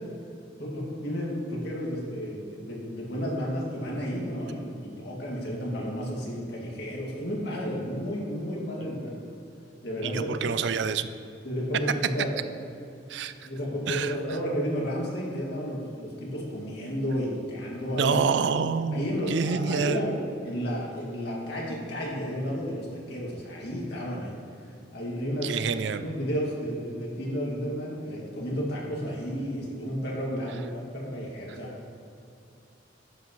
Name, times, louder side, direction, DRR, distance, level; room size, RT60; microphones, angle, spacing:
voice 1, 0.6-9.1 9.8-10.3 11.4-12.3 13.4-18.2 18.9-20.2 20.4-24.3 24.9-25.7 26.0-31.7, equal, 60° left, -4 dB, 2.2 m, -32 dB
voice 2, 10.0-11.1 13.1-13.3 13.9-14.2 18.0-20.1 25.4-26.0, right 6 dB, 60° right, 11 dB, 0.4 m, -27 dB
11.5 x 8.1 x 3.1 m, 2.6 s
head